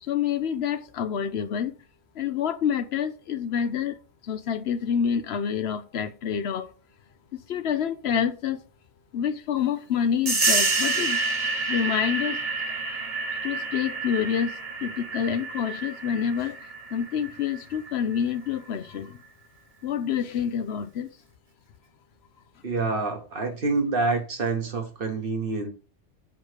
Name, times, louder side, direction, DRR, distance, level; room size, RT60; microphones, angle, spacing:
voice 1, 0.0-1.7 2.1-4.0 4.2-6.7 7.5-8.6 9.1-11.2 11.7-12.4 13.4-19.2 19.8-21.2, left 8 dB, 70° left, 0.9 m, -27 dB
sound 1, 10.3-18.5, right 3 dB, 35° right, 1.0 m, -29 dB
voice 2, 22.6-25.7, right 3 dB, 55° right, 1.5 m, -27 dB
7.2 x 3.1 x 5.0 m
omnidirectional pair, 1.2 m